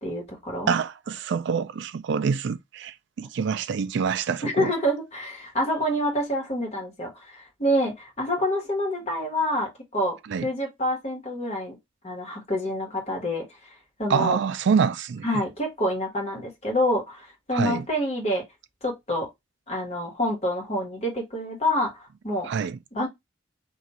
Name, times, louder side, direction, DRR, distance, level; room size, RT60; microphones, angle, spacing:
voice 1, 0.0-0.7 4.4-11.8 12.0-13.5 14.0-14.4 15.2-18.4 18.8-19.3 19.7-22.5 22.9-23.1, equal, 35° left, 1.3 m, -27 dB
voice 2, 0.7-4.7 10.3-10.5 14.1-15.4 17.5-17.9 22.4-22.8, right 6 dB, 65° right, 0.3 m, -26 dB
2.5 x 2.4 x 4.1 m
head